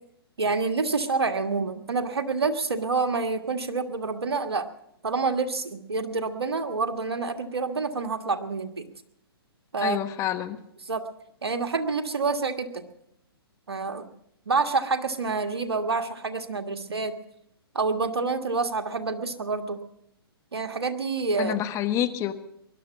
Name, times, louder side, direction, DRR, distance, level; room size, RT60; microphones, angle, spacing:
voice 1, 0.4-4.7 5.0-8.8 9.7-10.0 10.8-11.0 11.4-12.8 13.7-14.1 14.5-17.1 17.7-19.8 20.5-21.5, right 4 dB, 85° right, 6 dB, 1.6 m, -27 dB
voice 2, 9.8-10.6 21.4-22.3, left 11 dB, 25° left, 9 dB, 1.1 m, -27 dB
21.0 x 12.0 x 5.9 m, 0.77 s
hypercardioid pair, 130°, 13 cm